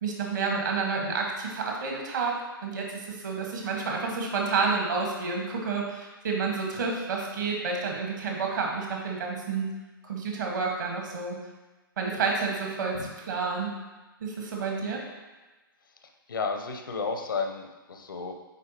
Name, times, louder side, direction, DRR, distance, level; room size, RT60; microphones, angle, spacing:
voice 1, 0.0-9.7 10.0-11.4 12.0-13.7 14.2-15.0, right 4 dB, 55° right, 0 dB, 1.5 m, -30 dB
voice 2, 16.3-18.3, left 4 dB, 65° left, 5 dB, 0.7 m, -32 dB
9.1 x 4.0 x 2.9 m, 1.2 s
figure-of-eight pair, 115°, 12 cm